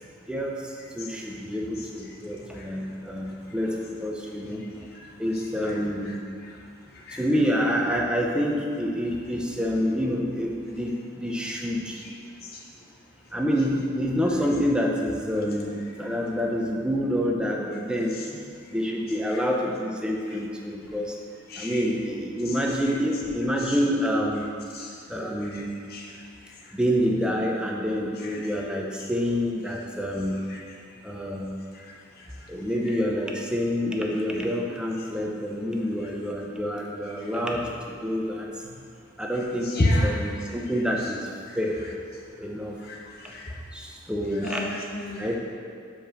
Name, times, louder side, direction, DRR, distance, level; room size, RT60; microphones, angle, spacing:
voice 1, 0.9-4.6 5.2-6.2 7.1-12.0 13.3-18.4 18.7-21.2 21.6-24.5 25.1-25.7 26.7-30.4 31.0-31.6 32.5-38.5 39.2-41.3 41.5-41.8 42.3-42.7 43.7-44.7 45.2-45.4, equal, 5° right, -1 dB, 0.6 m, -27 dB
voice 2, 21.5-21.8 24.7-24.9 25.5-25.6 25.9-26.1 28.3-28.5 30.5-30.6 31.7-31.8 39.7-40.1 42.9-43.5 44.4-45.3, left 1 dB, 50° left, -2 dB, 0.9 m, -28 dB
5.1 x 5.0 x 5.9 m, 2.2 s
head